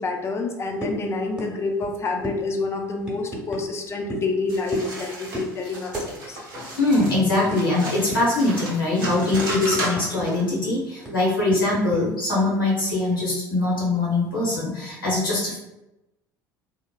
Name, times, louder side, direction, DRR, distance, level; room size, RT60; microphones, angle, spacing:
voice 1, 0.0-6.4, left 3 dB, 25° left, 3 dB, 0.4 m, -28 dB
sound 1, 0.8-1.0 1.4-1.5 1.8-1.9 2.2-2.4 3.0-3.6 4.1-4.3 4.7-5.0 5.3-5.5 5.9-6.1 6.4-6.5 7.0-7.1 7.5-7.6 8.1-8.4 8.8-10.3 10.5-10.6 11.1-12.0, equal, 10° right, 1.0 m, -32 dB
sound 2, 4.5-10.4, right 1 dB, 75° right, 0.8 m, -34 dB
voice 2, 6.8-15.6, left 2 dB, 85° left, -6 dB, 0.9 m, -22 dB
3.0 x 2.0 x 2.2 m, 0.94 s
figure-of-eight pair, 65°, 11 cm